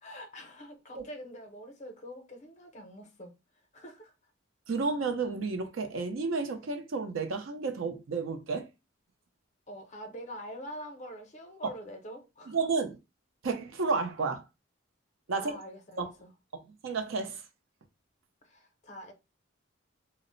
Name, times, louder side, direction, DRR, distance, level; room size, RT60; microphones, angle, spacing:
voice 1, 0.0-3.3 3.7-4.1 9.7-12.6 15.3-16.3 18.4-19.1, equal, 35° left, 0.5 m, -45 dB
voice 2, 4.7-8.7 12.5-13.0 13.4-14.4 15.3-15.6 16.0-16.1 16.8-17.4, right 4 dB, 80° right, 0.5 m, -31 dB
2.0 x 2.0 x 3.7 m
head